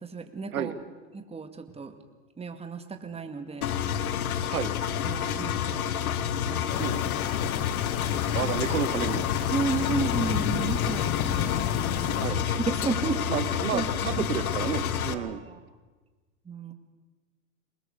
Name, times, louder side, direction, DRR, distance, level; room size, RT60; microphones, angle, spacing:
voice 1, 0.0-0.7 1.1-1.9 2.4-3.7 5.0-5.9 6.2-6.8 8.1-8.5 9.5-11.6 12.1-13.2 13.7-14.2 15.1-15.6 16.5-16.7, right 5 dB, 15° right, 7 dB, 2.2 m, -33 dB
Engine, 3.6-15.1, left 9 dB, 80° left, 1.5 m, -29 dB
sound 1, 6.7-12.3, left 10 dB, 35° left, 1.1 m, -32 dB
voice 2, 8.3-9.2 12.2-12.4 13.3-15.4, right 9 dB, 85° right, 12 dB, 1.7 m, -31 dB
23.5 x 20.5 x 6.7 m, 1.3 s
hypercardioid pair, 110°, 42 cm